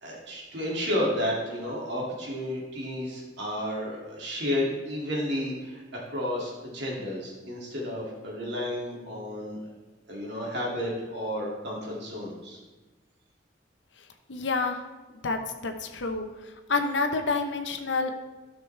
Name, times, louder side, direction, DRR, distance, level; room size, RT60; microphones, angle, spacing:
voice 1, 0.0-5.8 6.1-9.6 10.1-12.6, equal, 65° right, -3 dB, 2.4 m, -32 dB
voice 2, 14.3-14.8 15.2-18.1, left 3 dB, 70° left, 5 dB, 0.8 m, -29 dB
12.0 x 6.0 x 3.3 m, 1.2 s
head